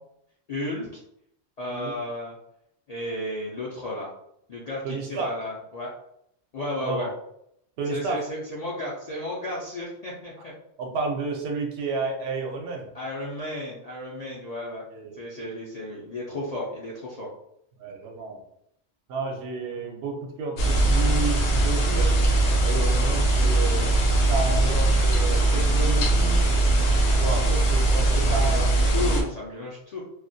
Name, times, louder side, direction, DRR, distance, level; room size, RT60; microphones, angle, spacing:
voice 1, 0.5-1.0 1.6-2.4 2.9-4.1 4.5-5.9 6.5-7.1 7.9-10.5 12.9-14.8 15.2-17.3 27.3-27.5 27.7-30.0, left 1 dB, 55° left, -5 dB, 0.4 m, -33 dB
voice 2, 4.8-5.3 6.8-7.1 7.8-8.2 10.8-12.9 14.9-15.2 17.8-18.4 19.1-22.2 22.6-23.9 24.2-26.7 27.2-28.7, right 4 dB, 70° right, 1 dB, 0.8 m, -31 dB
sound 1, 20.6-29.2, right 2 dB, 80° left, 0.9 m, -21 dB
2.3 x 2.1 x 2.6 m, 0.75 s
omnidirectional pair, 1.2 m